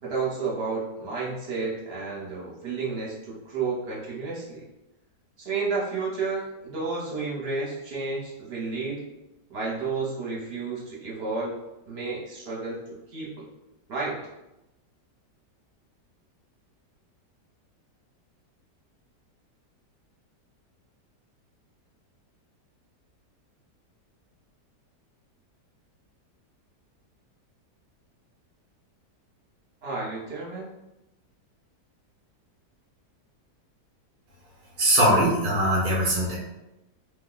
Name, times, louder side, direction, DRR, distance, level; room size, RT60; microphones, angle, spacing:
voice 1, 0.0-4.6 5.4-9.0 9.5-11.5 11.9-12.8 13.1-13.4 13.9-14.2 29.8-30.7, right 4 dB, 45° right, -5 dB, 1.0 m, -31 dB
voice 2, 34.8-36.4, equal, 60° right, -4 dB, 0.6 m, -21 dB
2.8 x 2.3 x 3.9 m, 0.93 s
omnidirectional pair, 1.8 m